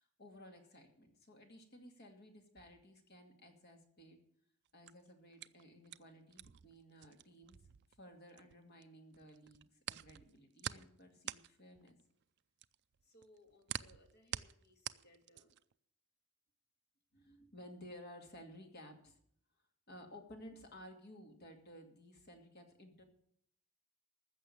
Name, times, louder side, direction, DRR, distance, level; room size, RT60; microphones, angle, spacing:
voice 1, 0.0-4.2 4.7-7.6 8.0-12.0 13.0-15.6 17.1-19.2 19.9-23.0, equal, 45° left, 3 dB, 2.4 m, -57 dB
sound 1, 4.7-8.8 9.1-15.7, right 11 dB, 50° right, 0.4 m, -46 dB
14.5 x 6.7 x 8.6 m, 0.67 s
head